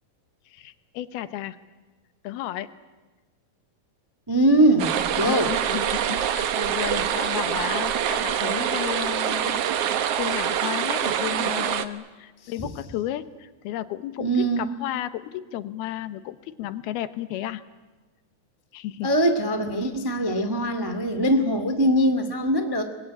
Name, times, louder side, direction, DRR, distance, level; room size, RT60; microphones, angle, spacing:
voice 1, 0.5-1.6 2.2-2.7 5.2-9.6 10.2-17.6 18.7-19.1, left 13 dB, 80° left, 13 dB, 3.0 m, -33 dB
voice 2, 4.3-5.5 12.4-12.7 14.2-14.7 19.0-22.8, right 1 dB, 25° right, 8 dB, 0.4 m, -22 dB
sound 1, 4.8-11.9, right 9 dB, 75° right, 1.4 m, -25 dB
25.0 x 22.0 x 10.0 m, 1.2 s
omnidirectional pair, 4.4 m